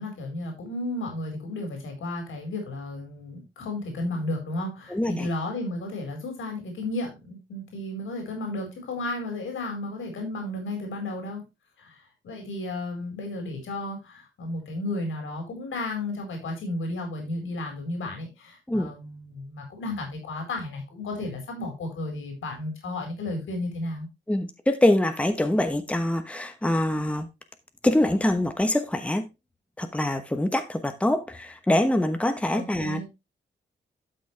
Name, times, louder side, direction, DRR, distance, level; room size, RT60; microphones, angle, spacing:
voice 1, 0.0-11.4 11.8-24.1 32.5-33.0, left 2 dB, 90° left, 4.4 m, -33 dB
voice 2, 4.9-5.3 18.7-18.9 24.3-27.3 27.8-29.2 29.8-33.0, left 1 dB, 5° left, 1.1 m, -24 dB
12.0 x 6.2 x 3.3 m
wide cardioid pair, 120°, 20 cm